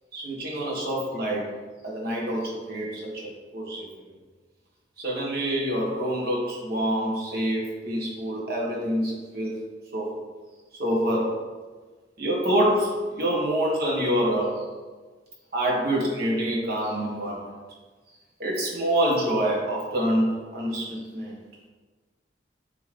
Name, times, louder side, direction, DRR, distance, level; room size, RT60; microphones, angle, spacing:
voice 1, 0.1-1.5 1.8-3.9 5.0-9.5 9.9-10.1 10.8-11.3 12.2-14.6 15.5-17.5 18.4-21.3, right 1 dB, 60° right, -3 dB, 1.8 m, -26 dB
8.8 x 3.6 x 3.5 m, 1.4 s
head